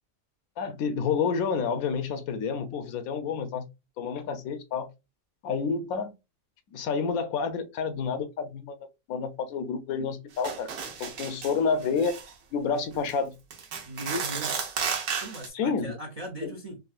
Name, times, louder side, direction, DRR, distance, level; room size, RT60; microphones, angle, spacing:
voice 1, 0.6-3.7 4.0-4.9 5.4-6.1 6.7-10.7 11.0-12.2 12.5-13.4 15.5-15.9 16.4-16.5, left 5 dB, 80° left, 1.1 m, -29 dB
sound 1, 10.4-11.5 11.8-12.3 12.9-13.1 13.5-15.5, right 6 dB, 80° right, 1.2 m, -33 dB
voice 2, 13.8-14.7 15.2-16.8, equal, 55° right, 0.4 m, -37 dB
3.7 x 2.3 x 2.3 m
omnidirectional pair, 1.5 m